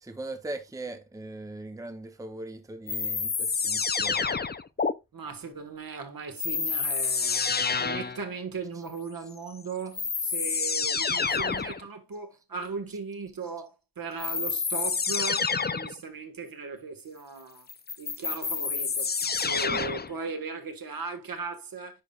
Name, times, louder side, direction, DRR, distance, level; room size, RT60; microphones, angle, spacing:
voice 1, 0.0-4.3 19.7-19.8, right 2 dB, 10° right, 0.7 m, -40 dB
sound 1, 2.9-4.9 6.4-8.2 9.5-9.6 9.9-11.8 14.2-16.0 17.7-20.1, left 5 dB, 25° left, 0.5 m, -28 dB
voice 2, 5.1-17.7 18.0-19.1 19.4-22.0, right 4 dB, 60° right, 1.6 m, -38 dB
9.8 x 5.5 x 2.4 m
wide cardioid pair, 125°, 38 cm